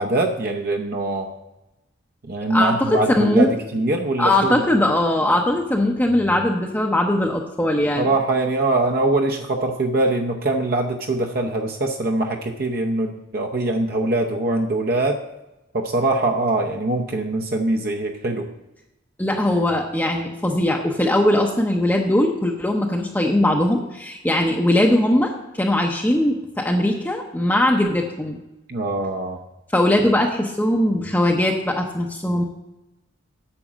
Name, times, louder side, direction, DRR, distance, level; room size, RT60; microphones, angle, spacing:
voice 1, 0.0-1.3 2.2-4.6 8.0-15.2 15.7-18.5 28.7-29.4, right 2 dB, 50° right, 2 dB, 0.7 m, -23 dB
voice 2, 2.5-3.5 4.2-8.1 19.2-28.4 29.7-32.4, left 1 dB, 10° left, 1 dB, 0.7 m, -20 dB
8.8 x 6.0 x 7.3 m, 0.95 s
head